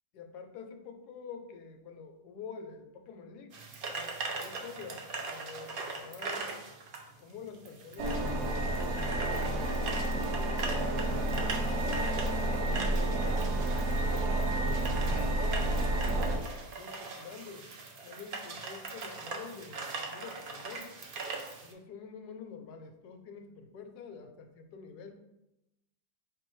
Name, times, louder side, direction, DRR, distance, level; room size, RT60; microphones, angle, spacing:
voice 1, 0.1-3.6 3.9-6.5 7.2-11.3 13.8-15.8 16.6-17.7 18.0-20.9 21.6-25.2, left 6 dB, 80° left, 6 dB, 1.1 m, -48 dB
sound 1, 3.5-21.7, right 3 dB, 90° right, 0.4 m, -41 dB
sound 2, 8.0-16.4, right 1 dB, 60° right, 0.9 m, -30 dB
4.8 x 3.2 x 3.1 m, 0.91 s
omnidirectional pair, 1.7 m